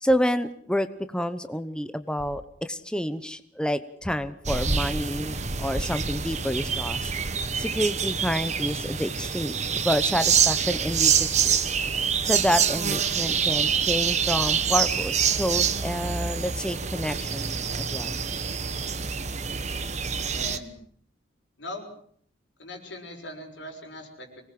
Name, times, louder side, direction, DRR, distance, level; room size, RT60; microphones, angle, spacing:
voice 1, 0.0-0.9 1.1-7.1 7.6-11.6 12.2-18.2, equal, 5° left, 11 dB, 0.9 m, -28 dB
sound 1, 2.2-2.5 4.0-4.8, left 1 dB, 65° left, 6.2 m, -45 dB
sound 2, 4.4-20.6, right 7 dB, 40° right, 1.4 m, -26 dB
voice 2, 20.3-20.8 21.6-21.9 22.6-24.4, left 1 dB, 85° left, 2 dB, 6.4 m, -40 dB
25.0 x 19.5 x 7.7 m, 0.62 s
head